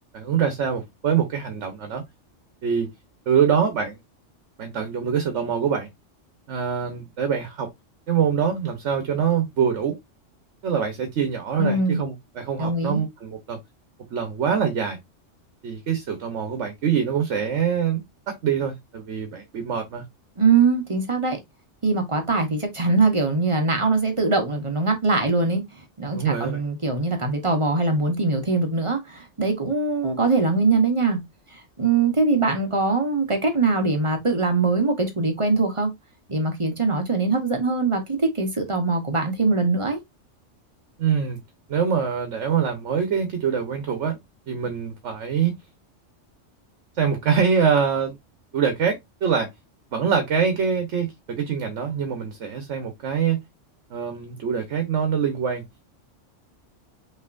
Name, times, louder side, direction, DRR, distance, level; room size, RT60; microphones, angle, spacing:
voice 1, 0.1-2.0 2.6-2.9 3.3-4.0 4.6-5.9 6.5-7.7 8.1-10.0 10.6-13.6 14.1-15.0 15.6-18.0 18.3-20.0 26.1-26.6 41.0-41.4 41.7-44.2 44.5-45.6 47.0-48.2 48.5-49.5 49.9-53.4 53.9-55.6, right 7 dB, 70° right, 1.3 m, -24 dB
voice 2, 11.6-12.0 12.6-13.0 20.4-21.4 21.8-25.6 26.0-31.2 31.5-35.9 36.3-40.0, right 3 dB, 30° right, 0.9 m, -22 dB
5.6 x 3.1 x 2.5 m
omnidirectional pair, 1.3 m